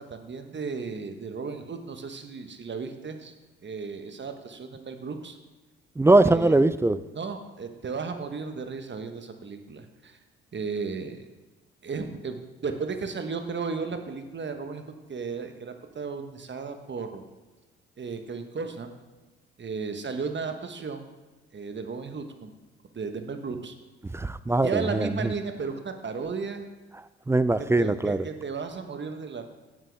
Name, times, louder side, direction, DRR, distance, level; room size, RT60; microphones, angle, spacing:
voice 1, 0.0-3.3 3.6-5.4 6.2-6.5 7.1-10.2 10.5-11.2 11.8-14.8 15.1-17.2 18.0-18.9 19.6-21.1 21.5-22.5 22.9-23.7 24.6-26.6 27.6-29.5, right 5 dB, 35° right, 7 dB, 1.2 m, -34 dB
voice 2, 6.0-7.0 24.1-25.1 27.3-28.2, right 2 dB, 10° right, 15 dB, 0.3 m, -21 dB
9.9 x 7.5 x 3.5 m, 1.2 s
hypercardioid pair, 50°, 31 cm